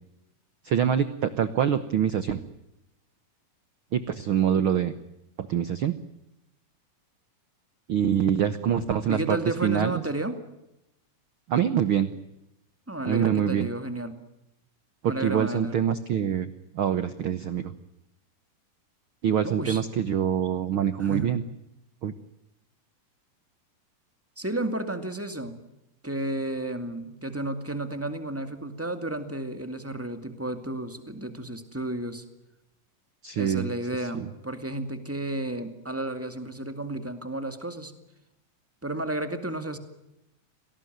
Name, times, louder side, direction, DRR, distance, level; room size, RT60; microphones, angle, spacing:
voice 1, 0.6-2.4 3.9-4.9 5.4-5.9 7.9-9.9 11.5-12.1 13.0-13.7 15.0-17.7 19.2-21.4 22.0-22.1 33.2-33.7, right 9 dB, 75° right, 13 dB, 1.2 m, -25 dB
voice 2, 9.1-10.4 12.9-14.1 15.0-15.8 19.4-19.8 21.0-21.3 24.4-25.6 26.0-32.2 33.3-37.9 38.8-39.8, right 1 dB, 5° right, 8 dB, 1.5 m, -32 dB
27.0 x 18.5 x 9.3 m, 0.89 s
omnidirectional pair, 3.9 m